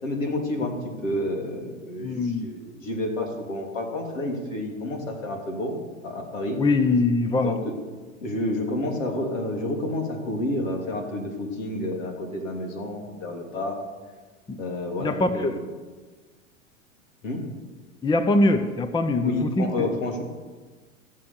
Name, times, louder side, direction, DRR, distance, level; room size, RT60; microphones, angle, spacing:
voice 1, 0.0-5.8 6.0-6.6 7.4-7.7 8.2-13.8 14.6-15.6 17.2-17.5 19.2-20.2, left 1 dB, 70° left, 3 dB, 3.1 m, -30 dB
voice 2, 2.0-2.5 6.6-7.6 14.5-14.6 15.0-15.6 18.0-19.9, left 2 dB, 10° left, 9 dB, 0.7 m, -23 dB
14.5 x 7.5 x 6.9 m, 1.4 s
hypercardioid pair, 95°, 40 cm